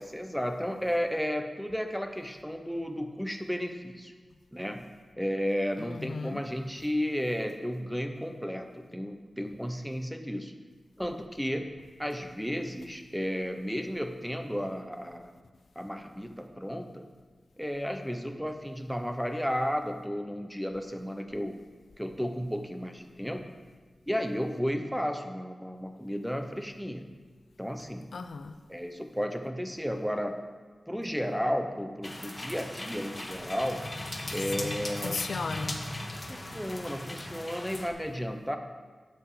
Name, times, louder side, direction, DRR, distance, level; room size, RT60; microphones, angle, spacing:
voice 1, 0.0-4.1 4.5-4.9 5.2-10.5 11.0-15.3 15.8-17.1 17.6-21.6 22.0-23.4 24.1-27.1 27.6-28.1 28.7-30.5 30.9-33.8 34.3-35.2 36.3-38.6, equal, ahead, 6 dB, 0.9 m, -33 dB
voice 2, 5.8-6.4 28.1-28.6 34.6-35.8, left 4 dB, 80° left, 9 dB, 0.6 m, -36 dB
sound 1, 32.0-37.9, left 1 dB, 25° left, 1.4 m, -38 dB
11.5 x 7.9 x 5.1 m, 1.4 s
wide cardioid pair, 105°, 0 cm